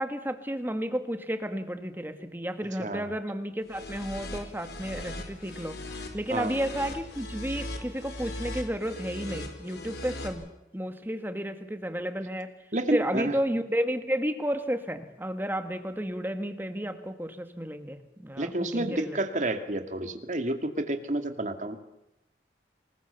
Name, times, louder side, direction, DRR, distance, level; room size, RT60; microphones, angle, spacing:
voice 1, 0.0-5.8 6.1-10.5 10.7-12.5 12.9-19.2, equal, 10° right, 8 dB, 1.9 m, -32 dB
sound 1, 3.7-10.3, left 1 dB, 75° left, 4.6 m, -39 dB
voice 2, 12.7-13.4 18.4-21.8, right 1 dB, 45° right, 7 dB, 2.3 m, -30 dB
27.0 x 21.0 x 6.9 m, 0.91 s
head